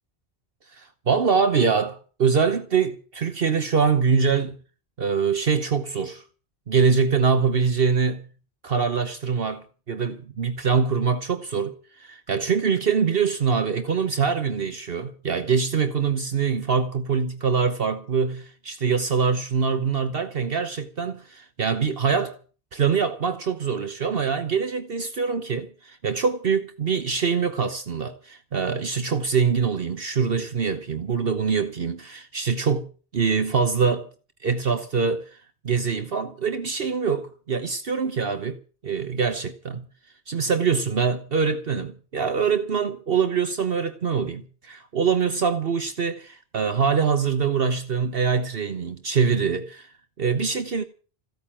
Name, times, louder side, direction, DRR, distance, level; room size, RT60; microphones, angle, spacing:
voice 1, 0.7-4.6 5.0-6.2 6.7-8.2 8.6-22.4 22.7-34.1 34.4-35.4 35.6-39.9 40.3-50.8, right 6 dB, 65° right, 1.3 m, -24 dB
15.5 x 9.2 x 8.9 m
omnidirectional pair, 1.1 m